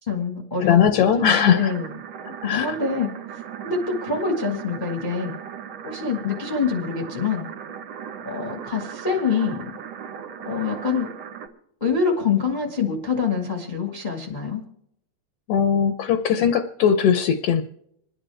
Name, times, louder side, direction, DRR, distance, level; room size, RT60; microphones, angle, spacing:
voice 1, 0.0-1.9 2.4-3.1 3.6-5.3 5.8-7.5 8.2-9.7 10.5-11.1 11.8-14.6, left 5 dB, 25° left, 1 dB, 1.1 m, -25 dB
voice 2, 0.6-1.7 2.4-2.8 15.5-17.6, left 8 dB, 70° left, 9 dB, 1.6 m, -19 dB
sound 1, 1.4-11.5, right 8 dB, 65° right, 2.3 m, -37 dB
27.5 x 10.5 x 3.4 m, 0.75 s
omnidirectional pair, 3.3 m